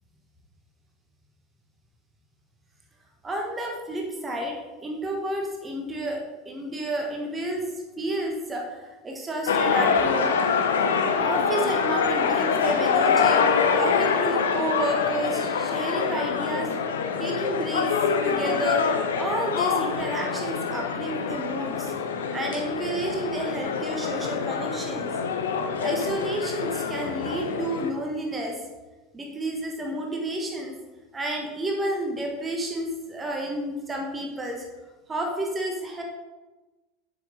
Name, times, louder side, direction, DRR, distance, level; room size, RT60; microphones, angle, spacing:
voice 1, 3.2-7.7 8.0-10.4 11.2-13.4 13.7-16.7 17.2-18.8 19.1-21.9 22.3-25.1 25.8-28.6 29.1-30.8 31.1-34.6 35.1-36.0, right 1 dB, 20° right, 1 dB, 1.5 m, -30 dB
sound 1, 9.5-27.9, left 6 dB, 70° left, 0.6 m, -25 dB
7.4 x 6.2 x 4.1 m, 1.1 s
figure-of-eight pair, 75°, 0 cm